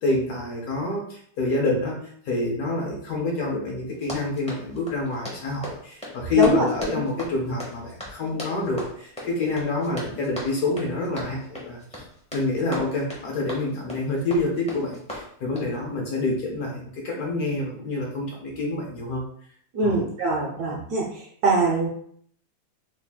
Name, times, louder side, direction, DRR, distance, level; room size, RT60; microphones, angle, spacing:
voice 1, 0.0-2.0 2.2-12.0 12.3-19.2 19.8-20.0, left 2 dB, 65° left, -1 dB, 1.0 m, -27 dB
Run, 3.9-15.8, left 1 dB, 10° left, 0.4 m, -38 dB
voice 2, 19.7-21.1 21.4-21.9, right 2 dB, 70° right, -2 dB, 1.0 m, -22 dB
3.5 x 3.4 x 2.3 m, 0.63 s
omnidirectional pair, 2.1 m